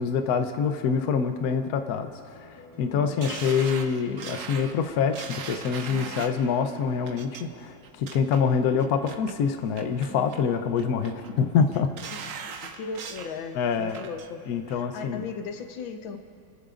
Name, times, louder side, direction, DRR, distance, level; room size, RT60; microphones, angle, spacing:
voice 1, 0.0-11.9 13.6-14.0 14.5-15.3, left 6 dB, 60° left, 7 dB, 1.1 m, -26 dB
sound 1, 0.7-13.2, equal, 15° left, 0.7 m, -49 dB
voice 2, 3.0-3.5 12.1-16.2, left 5 dB, 80° left, 5 dB, 1.7 m, -38 dB
sound 2, 3.2-6.4 7.0-7.4 7.8-8.4 8.8-9.3 9.7-10.4 10.8-11.3 11.7-13.3 13.7-14.3 14.7-14.8, right 6 dB, 60° right, 0.8 m, -39 dB
29.5 x 14.0 x 2.5 m, 2.3 s
omnidirectional pair, 2.1 m